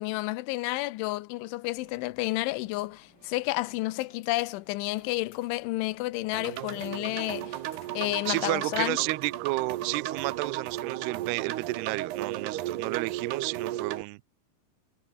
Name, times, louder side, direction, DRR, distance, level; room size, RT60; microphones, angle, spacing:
voice 1, 0.0-7.6 7.9-9.0, left 20 dB, 90° left, 3.2 m, -31 dB
sound 1, 1.2-10.4, right 4 dB, 45° right, 8.2 m, -64 dB
sound 2, 1.7-10.6, left 8 dB, 65° left, 5.2 m, -60 dB
sound 3, 6.3-14.0, right 14 dB, 70° right, 3.2 m, -35 dB
voice 2, 8.3-14.2, right 24 dB, 90° right, 2.3 m, -32 dB
omnidirectional pair, 5.3 m